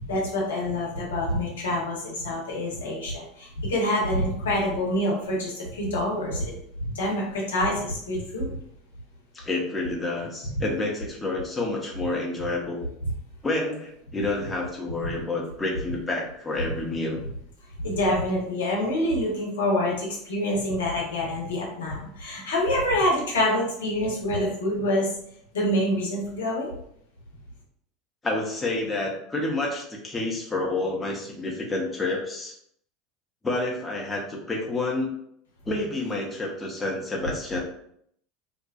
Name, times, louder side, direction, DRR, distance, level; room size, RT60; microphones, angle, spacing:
voice 1, 0.0-6.6 6.9-8.6 17.8-25.1 25.5-26.7, left 1 dB, 75° left, -3 dB, 0.8 m, -26 dB
voice 2, 9.3-12.9 13.4-17.2 28.2-32.5 33.4-35.1 35.7-37.6, left 2 dB, 15° left, -2 dB, 0.7 m, -29 dB
2.6 x 2.2 x 2.3 m, 0.69 s
figure-of-eight pair, 75°, 0 cm